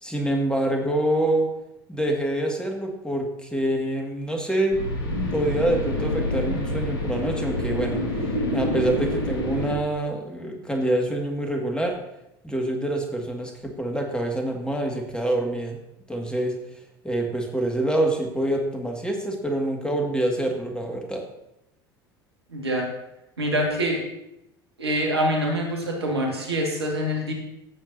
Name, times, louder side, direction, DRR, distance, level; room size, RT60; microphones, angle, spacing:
voice 1, 0.0-1.5 1.9-4.8 5.3-8.0 8.5-12.0 12.4-15.8 16.1-16.6 17.0-21.3, right 1 dB, 5° left, 2 dB, 1.9 m, -26 dB
sound 1, 4.7-9.7, left 1 dB, 70° left, 1.8 m, -27 dB
voice 2, 22.5-22.9 23.4-24.0 24.8-27.3, equal, 90° right, -1 dB, 1.9 m, -25 dB
14.5 x 7.2 x 2.7 m, 0.87 s
hypercardioid pair, 70°, 13 cm